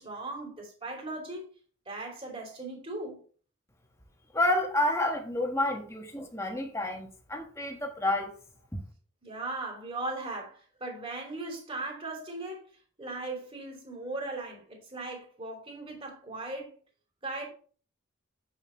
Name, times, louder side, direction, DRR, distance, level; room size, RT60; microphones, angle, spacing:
voice 1, 0.0-1.5 1.8-3.2 9.2-12.7 13.0-16.7 17.2-17.5, right 2 dB, 25° right, 3.1 m, -38 dB
voice 2, 4.3-8.4 8.7-8.8, left 1 dB, 15° left, 1.4 m, -29 dB
7.8 x 7.3 x 3.2 m
head